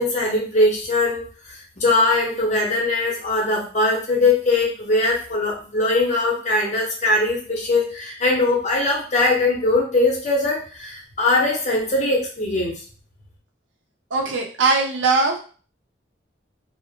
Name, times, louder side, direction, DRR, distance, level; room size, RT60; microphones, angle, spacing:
voice 1, 0.0-12.8, left 2 dB, 40° left, -2 dB, 0.7 m, -21 dB
voice 2, 14.1-15.4, right 3 dB, 85° right, 1 dB, 0.6 m, -20 dB
2.4 x 2.0 x 2.8 m, 0.39 s
head